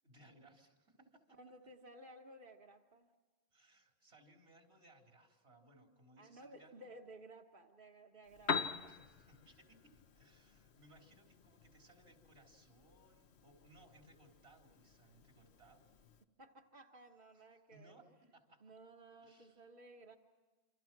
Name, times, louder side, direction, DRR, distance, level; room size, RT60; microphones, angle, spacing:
voice 1, 0.0-1.4 3.5-6.9 8.5-16.0 17.3-18.6 19.2-19.6, right 1 dB, 80° right, 2 dB, 4.2 m, -65 dB
voice 2, 1.4-3.1 6.2-8.5 16.4-18.0 18.6-20.2, right 1 dB, 55° right, 1 dB, 1.5 m, -57 dB
Piano, 8.2-16.2, left 5 dB, 85° left, 1.3 m, -46 dB
28.0 x 27.0 x 6.0 m, 1.3 s
omnidirectional pair, 1.1 m